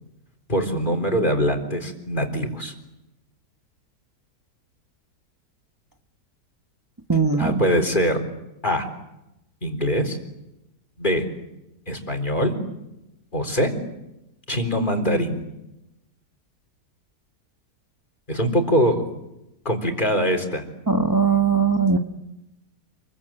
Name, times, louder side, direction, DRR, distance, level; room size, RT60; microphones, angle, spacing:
voice 1, 0.5-2.7 7.4-8.2 8.6-8.8 9.6-10.2 11.0-11.2 11.9-12.5 13.3-13.7 14.5-15.4 18.3-19.0 19.6-20.6, equal, 25° left, 4 dB, 4.1 m, -22 dB
voice 2, 7.1-7.5 20.9-22.0, right 5 dB, 15° right, 6 dB, 1.1 m, -19 dB
29.0 x 22.5 x 8.9 m, 0.91 s
omnidirectional pair, 1.9 m